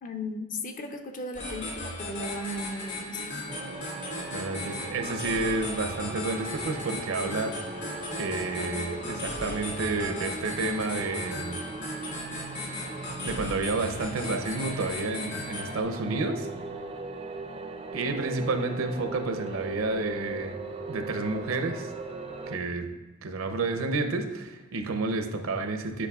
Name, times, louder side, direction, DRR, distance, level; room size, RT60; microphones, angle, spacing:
voice 1, 0.0-3.4, left 1 dB, 40° left, 5 dB, 0.5 m, -36 dB
sound 1, 1.3-15.8, left 2 dB, 55° left, 2.0 m, -37 dB
sound 2, 3.5-22.6, right 3 dB, 30° right, 0.4 m, -39 dB
voice 2, 4.3-7.5 8.2-11.6 13.2-16.5 17.9-20.5 20.9-21.9 22.5-22.9 23.2-26.1, right 3 dB, 70° right, 7 dB, 0.6 m, -30 dB
8.4 x 5.5 x 2.3 m, 1.2 s
head